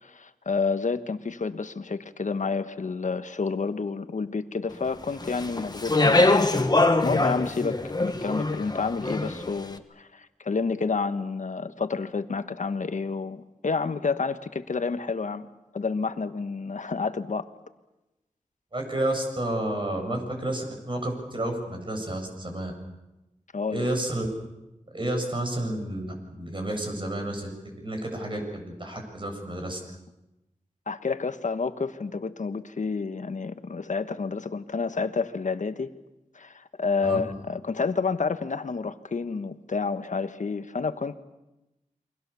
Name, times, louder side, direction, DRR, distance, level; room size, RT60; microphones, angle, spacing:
voice 1, 0.0-6.7 7.0-15.5 15.7-17.5 23.5-23.9 30.9-35.9 36.3-41.2, left 4 dB, 70° left, 10 dB, 1.4 m, -29 dB
Speech, 5.2-9.5, left 2 dB, 30° left, 1.7 m, -23 dB
voice 2, 18.7-22.7 23.7-24.3 24.9-27.5 27.8-29.8 37.0-37.2, right 1 dB, 40° right, 3 dB, 7.6 m, -30 dB
29.0 x 23.5 x 7.0 m, 0.98 s
wide cardioid pair, 70°, 13 cm